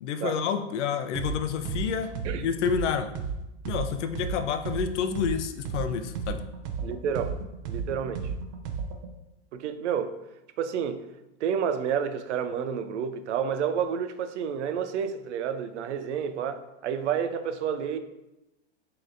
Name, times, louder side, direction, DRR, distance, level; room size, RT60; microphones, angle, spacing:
voice 1, 0.0-2.1 2.4-3.1 3.7-6.4, left 7 dB, 85° left, 0.5 m, -29 dB
sound 1, 1.1-1.3 1.6-5.3 5.6-9.1, right 7 dB, 40° right, 0.4 m, -33 dB
voice 2, 6.8-7.3 7.7-8.3 9.5-10.1 10.6-11.0 11.4-18.0, right 7 dB, 85° right, 0.5 m, -30 dB
6.2 x 2.9 x 2.6 m
supercardioid pair, 140°, 34 cm